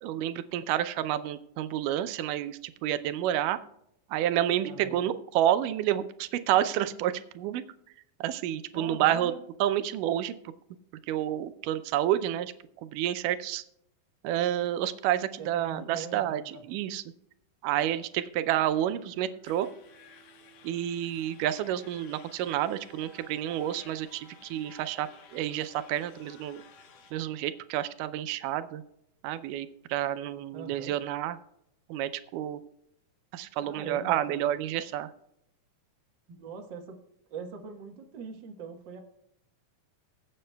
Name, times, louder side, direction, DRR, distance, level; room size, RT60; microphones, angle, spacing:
voice 1, 0.0-3.6 4.1-7.6 8.2-9.3 9.6-10.3 11.1-12.5 12.8-13.6 14.2-17.0 17.6-19.7 20.6-26.6 27.1-28.8 29.2-31.4 31.9-32.6 33.3-35.1, right 11 dB, 90° right, 11 dB, 2.2 m, -29 dB
voice 2, 4.6-5.0 8.7-9.4 15.4-16.7 30.5-30.9 33.6-34.5 36.3-37.0 37.3-39.0, right 5 dB, 55° right, 3 dB, 1.3 m, -42 dB
sound 1, 18.2-27.7, right 2 dB, 35° left, 2.7 m, -59 dB
sound 2, 19.4-27.1, left 7 dB, 80° left, 2.6 m, -56 dB
23.0 x 7.7 x 2.2 m, 0.77 s
omnidirectional pair, 3.6 m